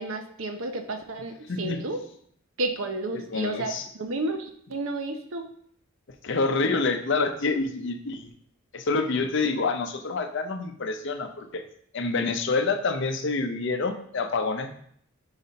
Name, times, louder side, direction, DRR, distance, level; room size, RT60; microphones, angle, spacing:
voice 1, 0.0-2.0 2.6-5.5, right 2 dB, 65° right, 6 dB, 0.7 m, -31 dB
voice 2, 3.3-3.9 6.2-8.3 8.7-11.6 11.9-14.7, left 3 dB, 55° left, 7 dB, 0.6 m, -27 dB
4.9 x 4.1 x 5.2 m, 0.65 s
head